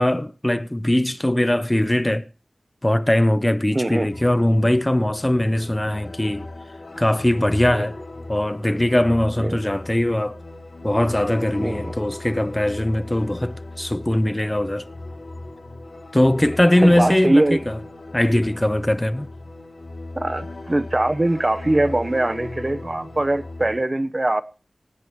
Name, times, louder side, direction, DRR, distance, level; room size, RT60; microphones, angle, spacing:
voice 1, 0.0-2.3 2.8-6.5 7.0-8.0 8.3-10.4 10.8-14.8 16.1-17.8 18.1-19.3, left 1 dB, 20° left, 0.7 m, -20 dB
voice 2, 3.7-4.1 7.6-7.9 9.4-9.6 11.6-11.9 16.8-17.6 20.2-24.4, right 1 dB, 35° right, 0.7 m, -22 dB
sound 1, 4.1-23.8, left 2 dB, 85° left, 6.0 m, -37 dB
24.5 x 8.6 x 3.1 m
wide cardioid pair, 60°, 0 cm